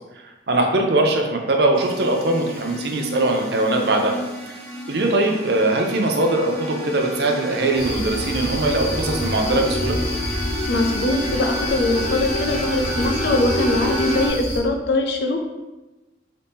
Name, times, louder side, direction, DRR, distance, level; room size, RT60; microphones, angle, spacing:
voice 1, 0.2-4.2 4.9-10.0, right 2 dB, 60° right, 2 dB, 0.6 m, -21 dB
sound 1, 1.7-14.3, left 1 dB, 5° left, 0.8 m, -30 dB
sound 2, 7.8-14.6, left 1 dB, 80° left, 1.0 m, -29 dB
voice 2, 10.7-15.4, left 2 dB, 60° left, 3 dB, 0.5 m, -22 dB
3.9 x 2.8 x 3.5 m, 1.1 s
head